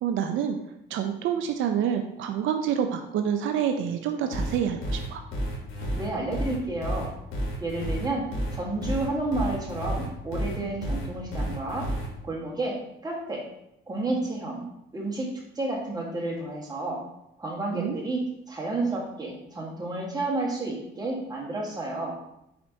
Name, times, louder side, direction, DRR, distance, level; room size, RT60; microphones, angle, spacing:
voice 1, 0.0-0.6 0.9-5.2 17.7-18.0, right 8 dB, 80° right, 6 dB, 0.4 m, -27 dB
sound 1, 4.3-12.1, equal, 85° left, 1.2 m, -30 dB
voice 2, 5.9-7.1 7.6-8.2 8.5-11.8 12.2-12.7 13.0-13.4 13.9-14.6 14.9-15.3 15.5-17.0 17.4-18.2 18.5-22.1, right 2 dB, 20° right, -3 dB, 1.4 m, -30 dB
4.2 x 4.2 x 2.7 m, 0.81 s
cardioid pair, 90°, 20 cm